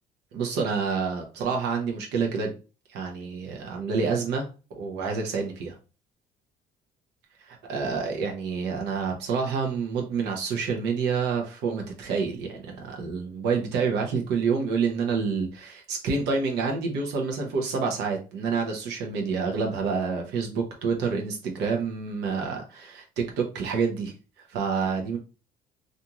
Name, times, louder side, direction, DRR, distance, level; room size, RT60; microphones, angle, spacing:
voice 1, 0.3-2.5 2.9-4.5 4.7-5.7 7.5-24.1 24.5-25.2, right 5 dB, 80° right, 1 dB, 0.8 m, -28 dB
2.6 x 2.4 x 2.8 m, 0.33 s
cardioid pair, 110°, 17 cm